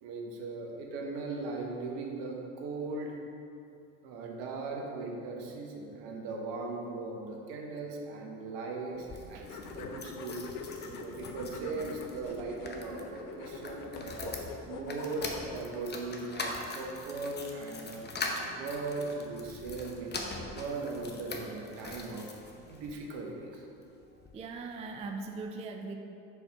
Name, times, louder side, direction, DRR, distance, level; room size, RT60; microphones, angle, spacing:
voice 1, 0.0-3.2 4.0-10.6 10.8-14.3 14.7-18.0 18.4-20.2 20.5-22.3 22.7-23.6, right 3 dB, 60° right, 0 dB, 1.4 m, -38 dB
sound 1, 8.9-23.0 23.5-24.4 24.7-24.8 25.0-25.1, left 2 dB, 20° left, 0.9 m, -42 dB
sound 2, 9.4-15.7, left 4 dB, 75° left, 0.8 m, -44 dB
voice 2, 24.3-26.0, right 3 dB, 15° right, 4 dB, 0.4 m, -39 dB
5.9 x 5.3 x 4.9 m, 2.6 s
hypercardioid pair, 75°, 45 cm